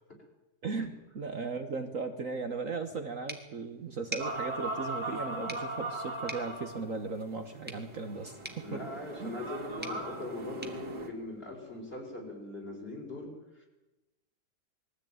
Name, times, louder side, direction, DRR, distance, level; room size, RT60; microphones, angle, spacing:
voice 1, 0.6-8.8 9.2-9.4, right 4 dB, 50° right, 6 dB, 1.6 m, -37 dB
sound 1, 3.3-12.0, right 1 dB, 5° right, 2.1 m, -48 dB
sound 2, 4.2-11.1, right 1 dB, 70° right, 3.4 m, -39 dB
voice 2, 8.6-13.7, left 2 dB, 30° left, 1 dB, 5.1 m, -41 dB
21.5 x 14.5 x 9.2 m, 1.0 s
omnidirectional pair, 1.9 m